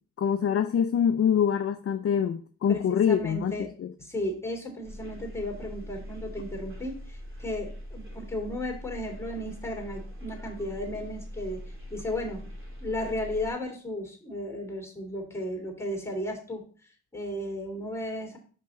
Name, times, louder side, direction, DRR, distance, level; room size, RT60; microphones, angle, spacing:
voice 1, 0.2-3.9, left 8 dB, 35° left, 0.5 m, -25 dB
voice 2, 3.1-3.7 4.0-12.5 12.8-18.4, left 1 dB, 5° left, 2.9 m, -34 dB
sound 1, 4.8-13.5, equal, 30° right, 2.8 m, -42 dB
5.6 x 5.3 x 3.8 m
supercardioid pair, 45°, 42 cm